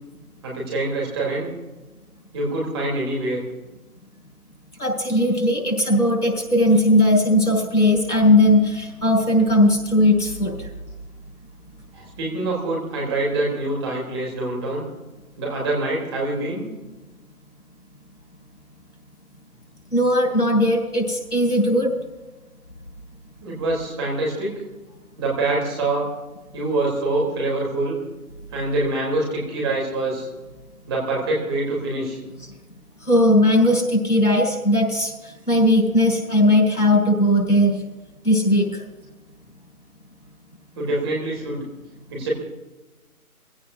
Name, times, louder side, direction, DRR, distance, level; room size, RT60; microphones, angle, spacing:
voice 1, 0.4-1.5 2.3-3.4 11.9-14.8 15.4-16.6 23.4-24.5 25.2-26.1 26.5-28.0 28.5-30.3 30.9-32.2 40.8-41.6 42.1-42.3, right 2 dB, 20° right, -3 dB, 3.6 m, -25 dB
voice 2, 4.8-10.7 19.9-21.9 33.0-37.8 38.2-38.8, left 1 dB, 90° left, 0 dB, 6.1 m, -18 dB
22.5 x 16.5 x 2.8 m, 1.1 s
figure-of-eight pair, 150°, 44 cm